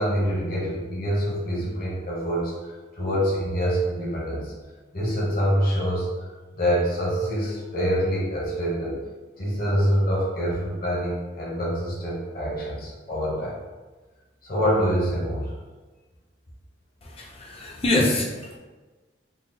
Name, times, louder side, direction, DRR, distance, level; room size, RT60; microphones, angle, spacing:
voice 1, 0.0-4.5 4.9-9.0 9.4-13.6 14.4-15.5, equal, 50° left, -6 dB, 1.0 m, -26 dB
voice 2, 17.0-18.6, left 2 dB, 30° left, -1 dB, 0.6 m, -25 dB
4.0 x 2.0 x 4.1 m, 1.3 s
head